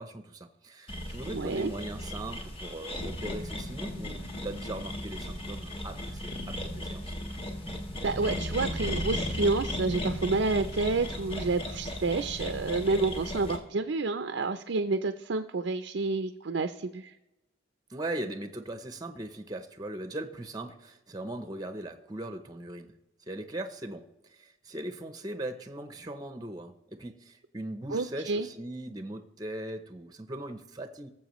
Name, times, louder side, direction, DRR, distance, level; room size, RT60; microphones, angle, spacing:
voice 1, 0.0-7.2 17.9-22.9 23.2-31.1, right 1 dB, 20° right, 8 dB, 0.6 m, -39 dB
sound 1, 0.9-13.6, left 1 dB, 30° left, 1.3 m, -36 dB
voice 2, 1.3-1.7 8.0-17.2 27.9-28.5, right 3 dB, 60° right, 8 dB, 0.5 m, -29 dB
19.0 x 7.4 x 3.1 m, 0.95 s
head